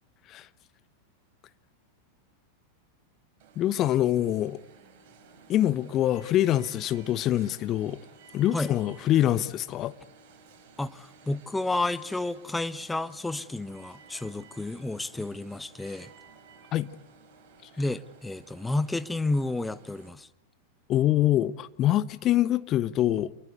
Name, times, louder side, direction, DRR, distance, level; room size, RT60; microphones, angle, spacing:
Alarm, 3.4-20.1, right 5 dB, 45° right, 5.8 m, -55 dB
voice 1, 3.6-4.6 5.5-8.0 8.3-9.9 16.7-16.9 20.9-23.3, left 12 dB, 35° left, 1.1 m, -25 dB
voice 2, 10.8-16.1 17.8-20.3, left 2 dB, 5° left, 1.1 m, -31 dB
28.0 x 22.5 x 8.2 m
figure-of-eight pair, 90°, 0 cm